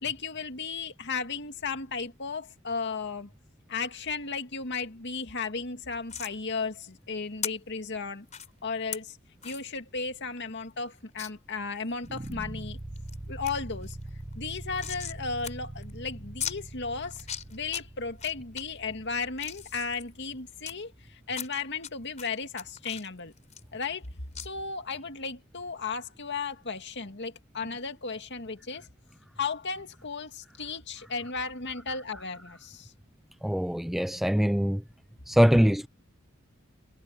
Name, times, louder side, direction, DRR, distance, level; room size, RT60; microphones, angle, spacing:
voice 1, 0.0-3.3 3.7-8.3 8.6-9.2 9.4-12.8 13.3-14.0 14.4-23.3 23.7-24.1 24.4-28.9 29.4-32.9, left 4 dB, 55° left, 2.2 m, -35 dB
sound 1, 6.1-6.3 7.4-7.5 8.3-8.5 8.9-9.0 9.4-9.6 10.0-10.1 10.4-10.5 11.2-11.3 11.8-12.3 12.8-13.2 13.5-13.6 13.8-15.2 15.4-15.5 15.8-15.9 16.4-16.6 17.1-17.8 18.2-18.6 19.1-20.7 21.3-21.9 22.2-24.1 24.3-24.5, left 9 dB, 35° left, 3.8 m, -38 dB
sound 2, 12.0-21.1, right 1 dB, 25° right, 0.9 m, -43 dB
voice 2, 33.4-34.8 35.3-35.9, equal, ahead, 0.4 m, -23 dB
head